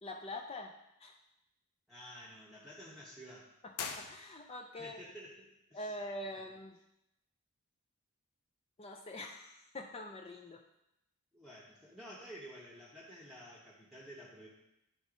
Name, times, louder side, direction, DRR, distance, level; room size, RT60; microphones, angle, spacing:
voice 1, 0.0-0.7 1.0-1.2 3.8-5.0 5.7-6.8 8.8-10.6, left 1 dB, 25° left, 3 dB, 0.4 m, -44 dB
voice 2, 1.9-3.5 4.8-6.0 6.3-6.4 11.3-14.5, equal, ahead, -5 dB, 1.0 m, -51 dB
sound 1, 3.7-4.8, left 6 dB, 90° left, 0.7 m, -43 dB
10.0 x 3.7 x 5.0 m, 0.87 s
head